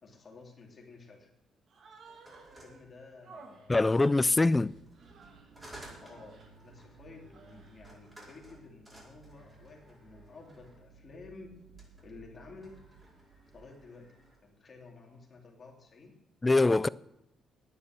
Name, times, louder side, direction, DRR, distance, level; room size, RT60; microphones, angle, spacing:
voice 1, 0.0-1.3 2.5-3.9 6.0-11.7 12.0-12.9 13.5-14.1 14.4-16.2, left 3 dB, 40° left, 2.8 m, -52 dB
Human voice, 1.7-2.8 3.2-5.6 5.9-6.6 7.1-7.9, right 4 dB, 60° right, 1.8 m, -56 dB
sound 1, 2.0-3.6 4.3-10.9 11.6-12.1 12.4-14.4, right 1 dB, 20° right, 4.9 m, -56 dB
voice 2, 3.7-4.7 16.4-16.9, left 2 dB, 20° left, 0.3 m, -23 dB
sound 2, 3.9-14.4, right 4 dB, 90° right, 2.0 m, -59 dB
10.0 x 9.6 x 7.4 m
cardioid pair, 90°, 0 cm